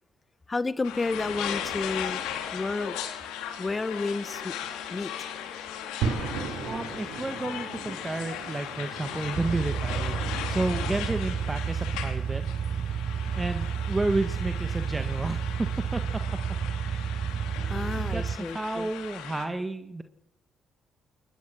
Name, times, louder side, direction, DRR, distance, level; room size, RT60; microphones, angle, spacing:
voice 1, 0.5-2.2 2.5-3.0 3.6-4.5 4.9-5.1 17.7-18.9, left 3 dB, 30° left, 15 dB, 1.1 m, -31 dB
sound 1, 0.8-19.5, left 9 dB, 80° left, 2.8 m, -37 dB
sound 2, 6.0-16.2, right 6 dB, 75° right, 3.0 m, -39 dB
voice 2, 6.6-10.2 10.5-12.4 13.3-16.0 17.6-20.0, right 2 dB, 20° right, 8 dB, 1.6 m, -31 dB
sound 3, 9.3-18.4, right 7 dB, 55° right, 0.7 m, -31 dB
21.5 x 21.0 x 6.2 m, 0.81 s
hypercardioid pair, 45°, 0 cm